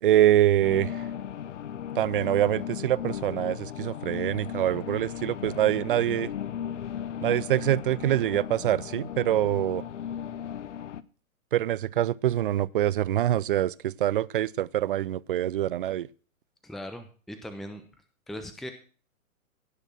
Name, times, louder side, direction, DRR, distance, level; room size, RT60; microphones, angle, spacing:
voice 1, 0.0-1.1 2.0-6.3 7.2-9.8 11.5-16.1, right 12 dB, 40° right, 0.5 m, -25 dB
sound 1, 0.6-11.0, left 9 dB, 55° left, 0.9 m, -36 dB
voice 2, 16.6-17.8 18.3-18.7, equal, ahead, 0.9 m, -39 dB
17.0 x 6.4 x 6.2 m
figure-of-eight pair, 120°, 43 cm